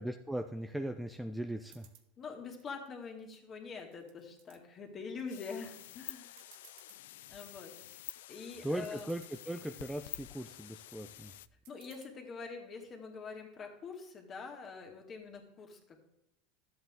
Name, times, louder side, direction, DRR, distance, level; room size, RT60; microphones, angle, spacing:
voice 1, 0.0-1.9 8.6-11.3, right 1 dB, 5° right, 6 dB, 0.6 m, -39 dB
sound 1, 1.6-2.1 2.6-3.4 3.8-4.6 5.1-5.5 5.9-6.0 6.3-7.0 7.5-7.9 8.5-8.6 8.7-9.5 10.0-10.5 11.6-12.1, right 11 dB, 70° right, 1.2 m, -61 dB
voice 2, 2.2-6.4 7.3-7.7 8.3-9.1 11.7-16.0, left 5 dB, 35° left, 2 dB, 2.3 m, -45 dB
sound 2, 5.3-11.5, left 14 dB, 85° left, 0.3 m, -49 dB
11.5 x 8.0 x 3.7 m, 0.82 s
supercardioid pair, 115°, 0 cm